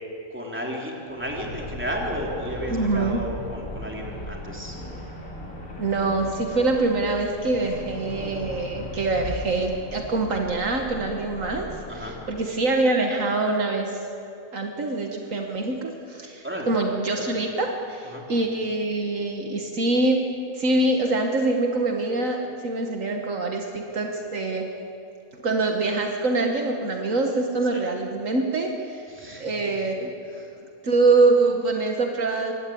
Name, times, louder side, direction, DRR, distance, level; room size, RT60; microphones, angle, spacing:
voice 1, 0.3-4.8 11.9-12.2 16.4-16.7 18.1-18.2 27.7-27.8 29.1-29.5 30.3-30.5, equal, 10° right, -1 dB, 3.5 m, -33 dB
sound 1, 1.1-12.4, left 1 dB, 70° left, 4.0 m, -37 dB
voice 2, 2.7-3.2 5.8-14.0 14.5-20.2 20.5-24.7 25.4-29.0 29.4-30.1 30.8-32.5, right 3 dB, 70° right, 2 dB, 1.8 m, -24 dB
23.5 x 17.0 x 8.7 m, 2.7 s
omnidirectional pair, 1.4 m